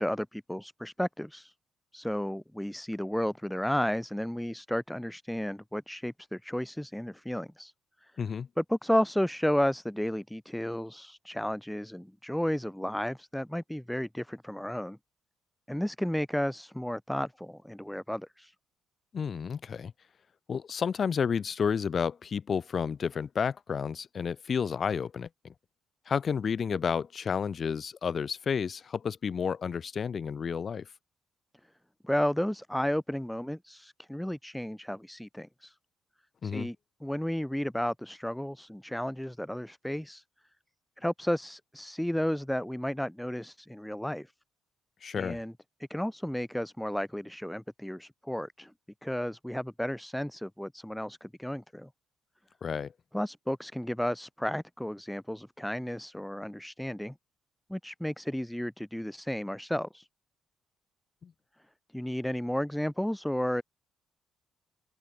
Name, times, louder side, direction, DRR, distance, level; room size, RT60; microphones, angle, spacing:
voice 1, 0.0-1.5 1.9-7.7 8.0-8.1 8.6-15.0 15.7-18.5 32.0-35.8 36.4-40.2 41.0-44.3 45.1-45.5 45.9-48.7 49.0-51.9 53.1-57.1 57.7-60.1 61.9-63.6, equal, 5° left, 1.6 m, -33 dB
voice 2, 8.2-8.5 19.1-19.9 20.5-25.5 26.1-30.8 36.4-36.7 45.0-45.4 52.6-52.9 61.2-61.3, left 6 dB, 45° left, 1.3 m, -31 dB
open air
cardioid pair, 90°, 0 cm